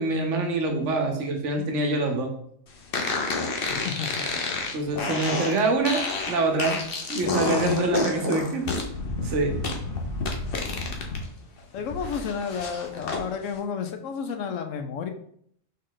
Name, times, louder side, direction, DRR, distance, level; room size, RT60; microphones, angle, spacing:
voice 1, 0.0-2.3 4.7-6.8 7.1-8.7 9.2-9.6, right 2 dB, 70° right, 3 dB, 1.1 m, -25 dB
sound 1, 2.9-11.2 11.6-13.2, left 3 dB, 55° left, 0.8 m, -30 dB
voice 2, 3.7-4.2 7.4-7.8 11.7-15.1, left 6 dB, 80° left, 6 dB, 1.0 m, -31 dB
4.4 x 3.2 x 3.8 m, 0.66 s
omnidirectional pair, 1.3 m